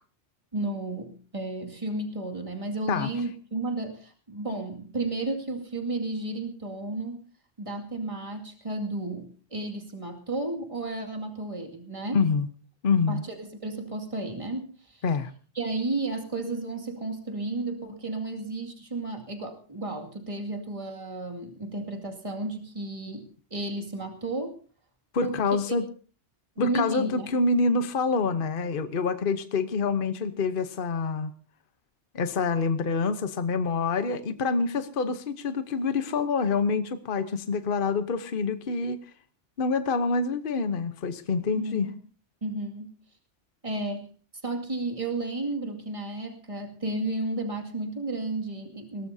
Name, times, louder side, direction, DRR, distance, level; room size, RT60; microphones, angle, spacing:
voice 1, 0.5-7.2 7.6-12.2 13.1-15.0 15.5-23.3 23.5-24.6 25.2-25.4 25.7-25.8 26.6-27.4 41.5-41.9 42.4-42.9 43.6-44.1 44.4-49.1, right 2 dB, 25° right, 1 dB, 2.3 m, -33 dB
voice 2, 12.1-12.5 12.8-13.2 15.0-15.3 25.1-25.8 26.6-31.3 32.1-39.0 39.6-41.9, left 4 dB, 50° left, 10 dB, 1.1 m, -26 dB
22.0 x 18.0 x 2.8 m, 0.40 s
omnidirectional pair, 1.2 m